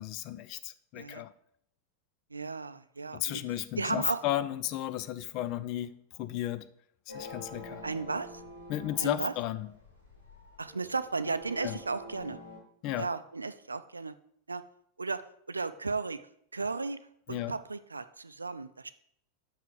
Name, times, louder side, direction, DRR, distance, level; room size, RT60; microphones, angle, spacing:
voice 1, 0.0-1.3 3.1-6.7 7.1-7.8 8.7-9.7 11.6-11.8 12.8-13.1 17.3-17.6, left 13 dB, 40° left, 13 dB, 0.5 m, -34 dB
voice 2, 2.3-3.4 3.8-4.2 7.8-8.4 9.0-9.3 10.6-12.4 13.0-14.1 14.5-14.6 15.0-15.2 15.5-16.2 16.5-17.0 17.3-18.9, right 4 dB, 80° right, 13 dB, 0.5 m, -34 dB
sound 1, 7.1-12.6, left 1 dB, 90° left, 3.2 m, -47 dB
5.8 x 5.7 x 6.5 m, 0.69 s
figure-of-eight pair, 90°, 0 cm